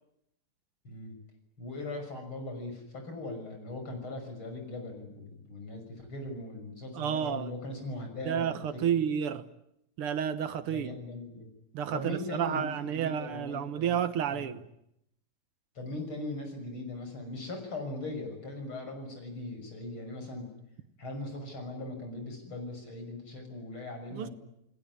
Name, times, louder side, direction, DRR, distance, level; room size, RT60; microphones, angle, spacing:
voice 1, 0.8-1.2 1.6-8.9 10.7-11.5 11.9-14.5 15.8-20.5 21.0-24.3, left 2 dB, 75° left, 7.2 m, -40 dB
voice 2, 6.9-7.5 8.3-9.5 10.0-10.9 11.7-14.6 24.1-24.3, right 8 dB, 90° right, 2.1 m, -31 dB
29.5 x 19.5 x 9.7 m
omnidirectional pair, 2.4 m